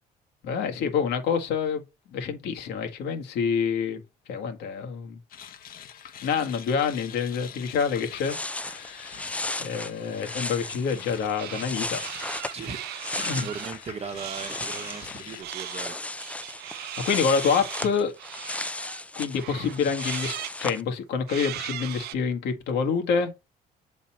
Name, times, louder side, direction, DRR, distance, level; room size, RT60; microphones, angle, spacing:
voice 1, 0.4-1.8 2.1-4.0 4.3-5.2 6.2-9.3 9.6-12.0 13.2-13.5 16.7-18.1 19.1-23.3, left 6 dB, 80° left, 1.7 m, -27 dB
sound 1, 5.3-15.4, left 9 dB, 60° left, 1.0 m, -45 dB
sound 2, 8.0-13.9 14.2-20.8, left 2 dB, 10° left, 0.4 m, -35 dB
sound 3, 11.4-11.7 11.9-13.7 14.1-15.1 15.4-19.0 19.4-20.6 21.3-22.2, right 14 dB, 75° right, 0.5 m, -38 dB
voice 2, 12.5-12.8 13.4-16.0, right 5 dB, 40° right, 1.0 m, -37 dB
7.4 x 4.1 x 4.2 m
cardioid pair, 110°, 17 cm